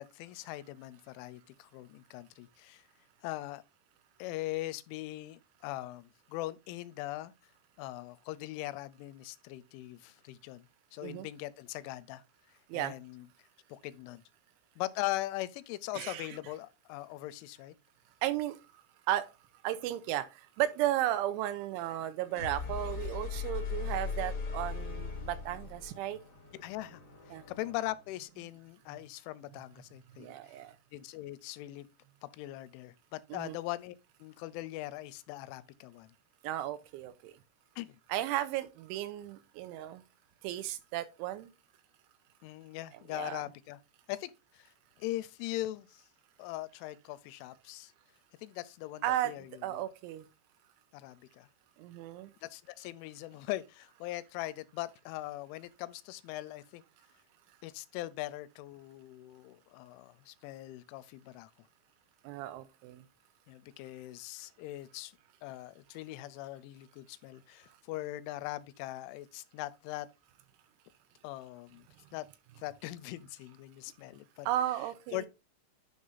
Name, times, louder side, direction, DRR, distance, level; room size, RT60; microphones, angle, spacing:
voice 1, 0.0-2.8 3.2-3.6 4.2-7.3 7.8-10.7 10.9-12.2 12.7-13.3 13.7-14.2 14.8-17.8 26.6-27.0 27.5-30.3 30.9-31.9 32.3-36.1 37.8-38.0 42.4-43.8 44.1-44.7 45.0-46.0 46.4-47.9 48.4-49.8 50.9-51.5 52.4-56.8 57.6-61.5 63.5-65.1 65.4-70.1 71.2-71.9 72.1-72.3 72.6-74.5 75.1-75.3, left 16 dB, 85° left, 3.0 m, -41 dB
voice 2, 15.9-16.4 18.2-19.3 19.6-26.2 27.3-27.5 30.2-30.8 33.3-33.6 36.4-37.4 38.1-40.0 40.4-41.5 43.1-43.4 49.0-50.3 51.8-52.3 62.2-63.0 74.4-75.3, right 13 dB, 85° right, 3.0 m, -35 dB
sound 1, 22.2-28.1, left 5 dB, 40° left, 1.7 m, -39 dB
9.6 x 5.5 x 2.5 m
omnidirectional pair, 5.5 m